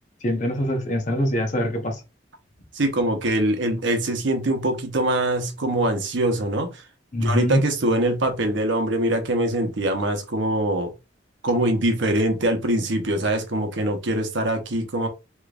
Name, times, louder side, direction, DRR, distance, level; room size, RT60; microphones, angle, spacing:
voice 1, 0.2-2.0 7.1-7.6, equal, 40° left, 0.8 m, -23 dB
voice 2, 2.7-6.7 7.2-10.9 11.4-15.1, right 1 dB, 65° right, 0.8 m, -23 dB
3.4 x 3.0 x 2.4 m
head